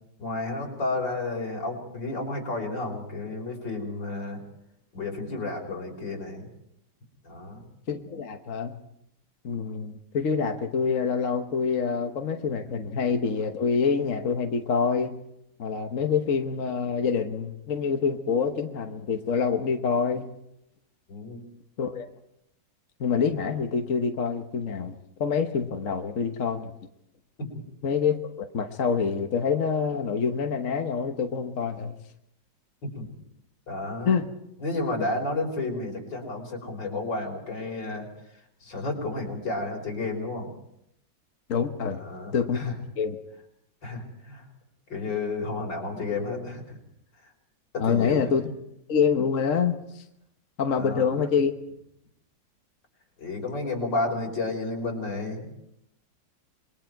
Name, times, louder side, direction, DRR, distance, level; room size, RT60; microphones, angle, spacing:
voice 1, 0.2-4.4 4.9-6.5 7.2-7.7 21.1-21.4 27.4-27.5 32.9-33.1 33.7-34.2 34.6-40.5 42.0-42.8 43.8-44.5 44.9-46.8 47.2-47.3 47.7-48.4 50.7-51.2 53.2-55.5, left 2 dB, 75° left, 1 dB, 5.4 m, -32 dB
voice 2, 7.9-8.7 9.4-15.1 15.6-20.3 21.8-22.0 23.0-24.9 25.2-26.7 27.8-31.9 34.0-34.3 41.5-42.0 42.3-42.6 43.0-43.2 47.8-48.4 48.9-50.0 50.6-51.5, left 6 dB, 50° left, 5 dB, 1.3 m, -26 dB
27.0 x 22.0 x 4.6 m, 0.80 s
omnidirectional pair, 2.0 m